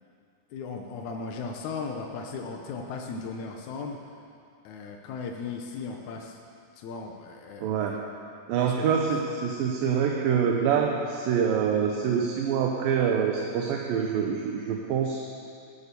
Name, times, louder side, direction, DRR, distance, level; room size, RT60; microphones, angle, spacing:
voice 1, 0.5-4.0 4.6-6.4 6.8-8.0 8.6-8.9, left 4 dB, 75° left, 2 dB, 1.8 m, -37 dB
voice 2, 7.6-8.0 8.5-15.2, right 7 dB, 70° right, 1 dB, 2.5 m, -25 dB
18.0 x 10.5 x 6.9 m, 2.5 s
omnidirectional pair, 4.5 m